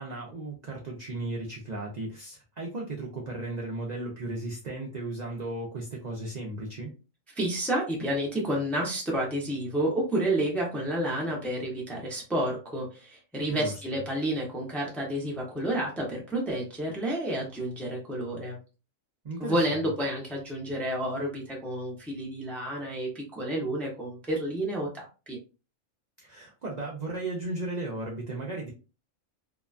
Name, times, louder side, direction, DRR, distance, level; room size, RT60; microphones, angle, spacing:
voice 1, 0.0-6.9 13.5-13.7 19.2-19.6 26.2-28.7, right 2 dB, 60° right, -1 dB, 0.4 m, -35 dB
voice 2, 7.4-18.6 19.4-25.4, right 1 dB, ahead, -2 dB, 0.4 m, -30 dB
2.8 x 2.2 x 2.4 m, 0.33 s
omnidirectional pair, 1.4 m